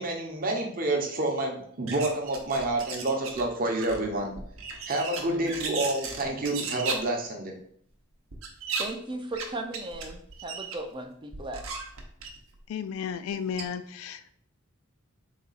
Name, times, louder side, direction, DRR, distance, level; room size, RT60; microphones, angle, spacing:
voice 1, 0.0-4.3 4.9-7.5, right 2 dB, 40° right, 1 dB, 0.7 m, -28 dB
sound 1, 1.9-3.4 3.7-6.9 8.3-8.8 9.3-9.5 9.7-10.8 11.3-12.6 13.3-13.4 13.6-13.7, right 5 dB, 70° right, 0.7 m, -35 dB
voice 2, 8.8-11.6, right 2 dB, 20° right, 5 dB, 0.4 m, -37 dB
voice 3, 12.7-14.3, left 7 dB, 75° left, 11 dB, 0.3 m, -33 dB
4.0 x 2.3 x 3.9 m, 0.65 s
head